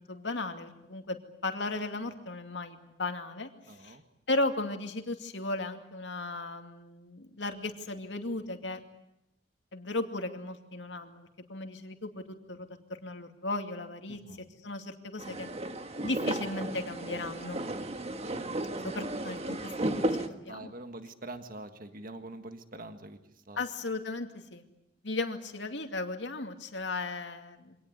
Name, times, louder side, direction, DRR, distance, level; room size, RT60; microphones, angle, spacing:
voice 1, 0.0-3.5 3.8-4.0 4.3-8.8 9.7-14.2 14.6-15.5 16.0-17.6 18.8-20.7 23.6-24.6 25.0-27.8, left 2 dB, 75° left, 5 dB, 2.5 m, -36 dB
voice 2, 3.6-4.0 14.1-14.4 20.4-23.6, right 2 dB, 50° right, 8 dB, 1.7 m, -45 dB
sound 1, 15.2-20.3, right 1 dB, 35° right, 1.5 m, -34 dB
25.5 x 18.5 x 9.7 m, 0.83 s
head